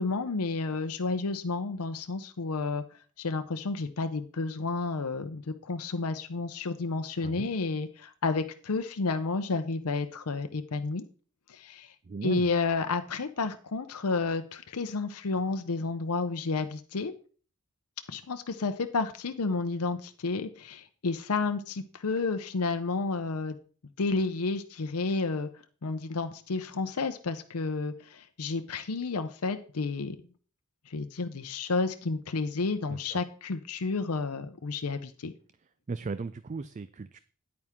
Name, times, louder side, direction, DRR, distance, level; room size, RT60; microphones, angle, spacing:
voice 1, 0.0-2.8 3.2-11.0 11.5-11.9 12.2-17.1 18.1-23.6 24.0-25.5 25.8-30.2 30.9-35.3, left 3 dB, 80° left, 8 dB, 0.7 m, -31 dB
voice 2, 12.1-12.5 32.9-33.2 35.9-37.2, right 4 dB, 35° right, 14 dB, 0.3 m, -37 dB
9.6 x 9.0 x 3.6 m, 0.40 s
head